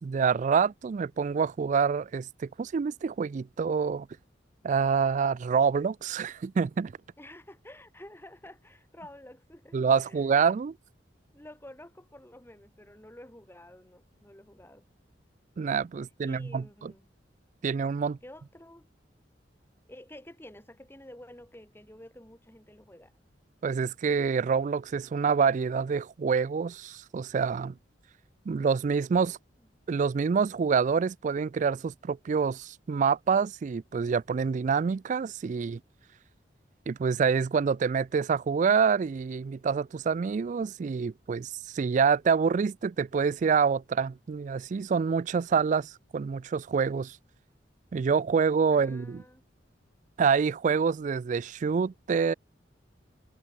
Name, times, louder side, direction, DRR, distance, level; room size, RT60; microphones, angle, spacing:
voice 1, 0.0-4.1 4.6-6.9 9.7-10.7 15.6-16.9 17.6-18.2 23.6-27.7 28.5-29.4 29.9-35.8 36.9-47.2 47.9-49.2 50.2-52.3, right 6 dB, 40° right, 0.3 m, -27 dB
voice 2, 7.2-10.3 11.3-14.9 16.2-17.1 18.2-18.9 19.9-23.1 48.7-49.4, left 1 dB, 15° left, 4.2 m, -50 dB
head